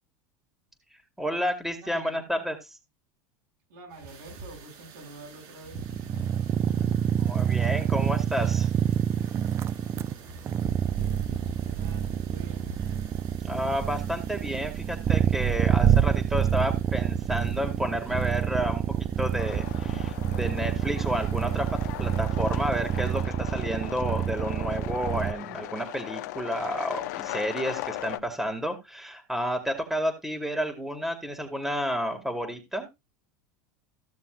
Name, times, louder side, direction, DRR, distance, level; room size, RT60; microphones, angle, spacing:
voice 1, 1.2-2.6 7.2-8.7 13.4-18.8 19.2-21.7 22.0-32.9, equal, 5° right, 4 dB, 2.2 m, -31 dB
voice 2, 1.8-2.2 3.7-5.9 10.7-11.3 11.6-12.6, right 2 dB, 80° right, 1 dB, 6.2 m, -47 dB
sound 1, 3.9-23.2, right 3 dB, 60° right, 3.4 m, -46 dB
sound 2, 5.7-25.3, right 9 dB, 25° right, 0.4 m, -27 dB
sound 3, 19.4-28.2, left 17 dB, 70° left, 0.7 m, -38 dB
15.0 x 6.7 x 2.5 m, 0.23 s
supercardioid pair, 120°, 10 cm